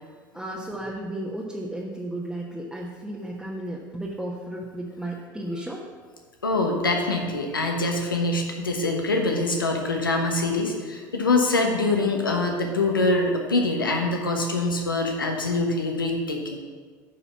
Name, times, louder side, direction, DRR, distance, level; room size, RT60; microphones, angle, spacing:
voice 1, 0.3-5.8, right 1 dB, 5° right, -4 dB, 1.2 m, -34 dB
voice 2, 6.4-16.6, left 2 dB, 85° left, 2 dB, 1.2 m, -24 dB
8.4 x 5.8 x 6.1 m, 1.6 s
figure-of-eight pair, 65°, 11 cm